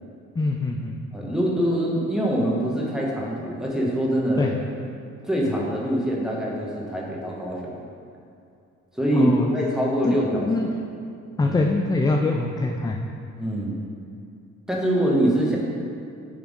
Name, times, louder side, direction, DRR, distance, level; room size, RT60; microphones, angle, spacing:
voice 1, 0.4-0.9 4.4-4.5 9.1-9.5 10.0-10.7 11.4-13.0, left 3 dB, 15° left, 2 dB, 0.3 m, -23 dB
voice 2, 1.1-4.5 5.2-7.8 8.9-10.7 11.4-11.6 13.4-13.8 14.7-15.6, right 1 dB, ahead, -4 dB, 1.4 m, -24 dB
9.9 x 3.5 x 3.7 m, 2.5 s
cardioid pair, 90°, 30 cm